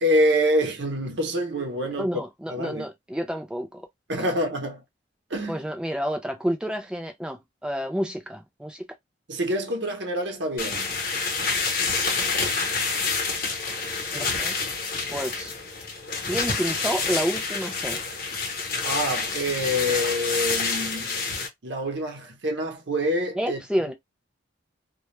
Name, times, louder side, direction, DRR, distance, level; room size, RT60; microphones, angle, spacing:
voice 1, 0.0-2.1 2.5-2.9 4.1-4.8 5.3-5.6 9.3-11.0 18.8-21.1 21.6-23.6, equal, 70° right, 0.8 m, -26 dB
voice 2, 2.0-3.8 5.5-8.8 14.1-14.6 15.1-15.5 16.3-18.0 23.4-23.9, equal, 5° right, 0.4 m, -29 dB
sound 1, 10.6-21.5, left 4 dB, 50° left, 0.8 m, -28 dB
2.3 x 2.0 x 3.0 m
head